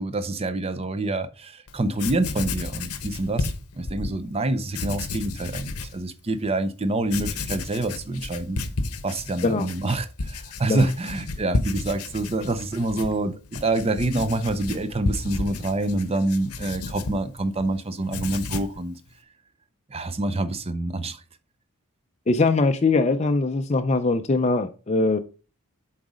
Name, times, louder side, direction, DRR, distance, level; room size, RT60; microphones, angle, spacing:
voice 1, 0.0-3.5 3.7-8.6 9.0-18.9 19.9-21.2, right 2 dB, 25° right, 0.5 m, -26 dB
Writing, 1.7-1.8 2.0-4.1 4.7-6.0 6.4-6.5 7.0-17.7 18.0-18.8, left 3 dB, 80° left, 0.8 m, -32 dB
voice 2, 22.3-25.2, left 3 dB, 30° left, 0.4 m, -21 dB
7.6 x 4.0 x 4.9 m
head